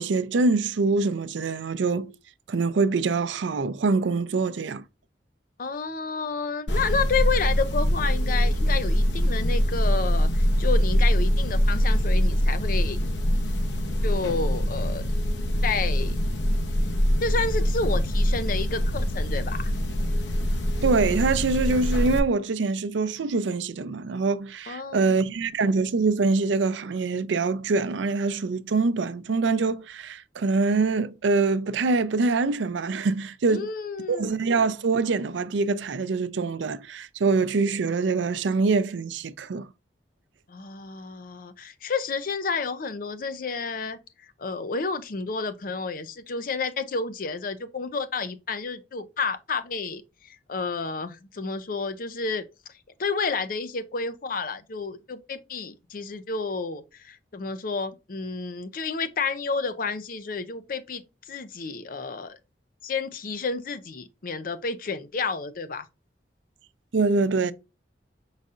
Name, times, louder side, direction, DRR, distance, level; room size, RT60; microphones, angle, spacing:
voice 1, 0.0-2.2 2.5-4.8 20.8-33.7 34.1-39.7 66.9-67.5, right 4 dB, 90° right, 0.4 m, -24 dB
voice 2, 5.6-13.0 14.0-15.0 15.6-16.2 17.2-19.7 24.7-25.2 33.5-34.3 40.5-52.4 53.0-62.4 62.8-65.9, left 4 dB, 50° left, 0.5 m, -30 dB
sound 1, 6.7-22.2, equal, 80° left, 0.8 m, -23 dB
5.3 x 4.0 x 2.4 m
head